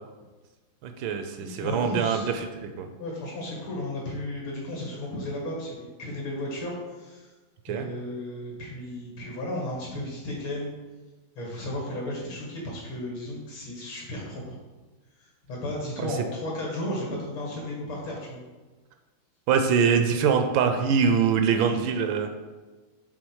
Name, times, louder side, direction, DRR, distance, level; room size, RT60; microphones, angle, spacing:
voice 1, 0.8-2.5 2.8-2.9 7.7-7.9 16.0-16.1 19.5-22.3, right 6 dB, 75° right, 6 dB, 1.2 m, -23 dB
voice 2, 1.4-2.3 2.7-7.3 7.7-10.7 11.3-14.6 15.2-18.4 21.6-21.9, left 1 dB, 70° left, -3 dB, 2.7 m, -34 dB
6.3 x 3.7 x 4.7 m, 1.2 s
omnidirectional pair, 2.3 m